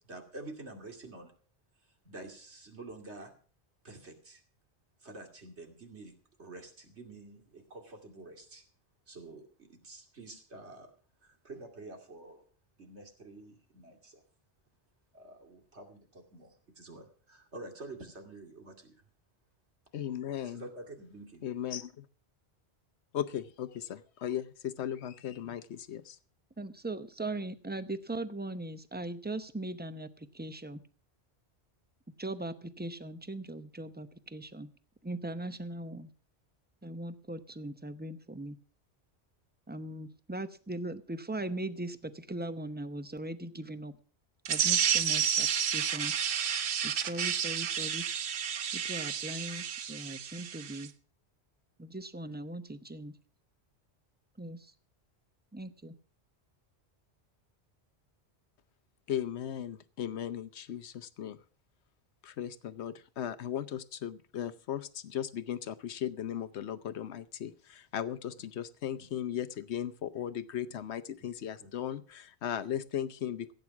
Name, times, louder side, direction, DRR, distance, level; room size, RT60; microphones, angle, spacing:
voice 1, 0.0-1.3 2.0-3.3 3.8-4.4 5.0-6.1 6.4-8.6 9.1-10.9 11.2-12.4 12.8-14.2 15.1-18.9 20.4-21.5 68.9-69.4 70.7-70.8 71.6-71.7, right 2 dB, 85° right, 3 dB, 2.8 m, -48 dB
voice 2, 19.9-20.6 21.4-21.9 23.1-26.2 59.1-61.4 62.2-73.5, left 10 dB, 80° left, 13 dB, 1.1 m, -37 dB
voice 3, 26.6-30.8 32.2-34.7 35.0-36.1 36.8-38.6 39.7-44.0 44.5-45.5 45.7-46.1 46.8-48.0 48.7-50.9 51.8-53.1 54.4-54.7 55.5-55.9, right 2 dB, 10° right, 11 dB, 0.7 m, -39 dB
sound 1, 44.4-50.9, right 8 dB, 70° right, 1.0 m, -31 dB
16.0 x 8.8 x 6.0 m, 0.43 s
omnidirectional pair, 1.1 m